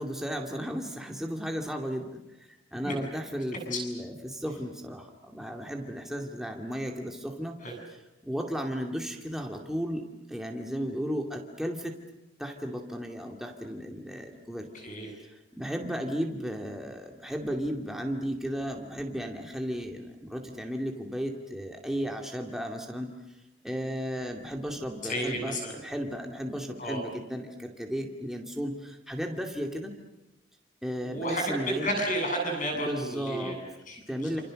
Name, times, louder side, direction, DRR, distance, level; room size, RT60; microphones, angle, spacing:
voice 1, 0.0-2.2 2.7-7.6 8.2-10.0 10.3-11.9 12.4-14.7 15.2-23.1 23.6-29.9 30.8-31.9 32.8-33.6 34.1-34.4, equal, ahead, 2 dB, 2.6 m, -34 dB
voice 2, 25.0-25.7 26.8-27.0 31.0-31.5 31.8-34.3, equal, 40° left, 2 dB, 7.8 m, -32 dB
28.5 x 28.0 x 6.5 m, 0.97 s
head